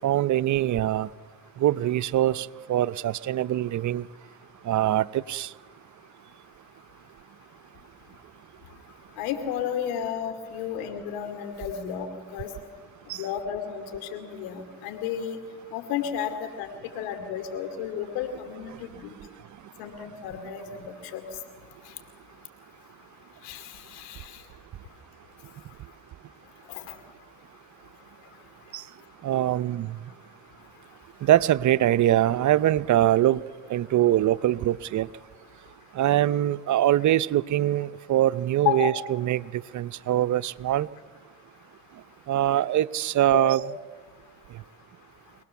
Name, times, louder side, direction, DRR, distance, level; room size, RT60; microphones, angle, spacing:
voice 1, 0.0-1.1 1.6-4.1 4.6-5.5 13.1-13.2 28.7-28.8 29.2-30.0 31.2-33.4 33.7-35.1 35.9-40.9 42.3-43.6, right 13 dB, 55° right, 16 dB, 0.7 m, -23 dB
voice 2, 9.2-12.1 12.3-12.5 13.1-15.4 15.7-16.7 17.0-19.1 19.8-21.2 23.4-24.4 26.7-26.9 38.6-38.9 43.3-43.5, left 9 dB, 90° left, 8 dB, 2.7 m, -32 dB
26.5 x 19.0 x 7.1 m, 1.5 s
supercardioid pair, 65°, 34 cm